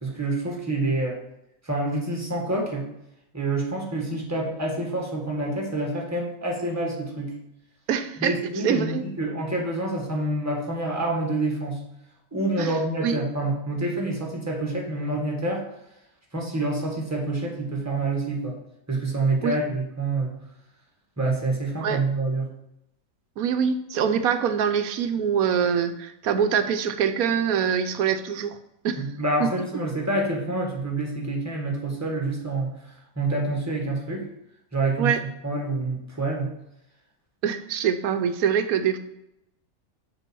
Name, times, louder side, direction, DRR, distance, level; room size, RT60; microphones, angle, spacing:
voice 1, 0.0-1.2 1.6-2.9 3.3-7.4 8.2-11.8 12.3-15.7 16.3-18.6 18.9-20.4 21.2-22.5 29.0-34.3 34.7-35.1 35.4-36.5, right 2 dB, 10° right, 0 dB, 1.6 m, -27 dB
voice 2, 7.9-8.4 8.6-9.0 12.6-13.2 19.4-19.5 21.8-22.0 23.4-28.6 28.8-29.0 29.4-29.5 35.0-35.2 37.4-39.0, right 7 dB, 75° right, 9 dB, 1.1 m, -24 dB
6.7 x 4.4 x 6.2 m, 0.83 s
omnidirectional pair, 1.5 m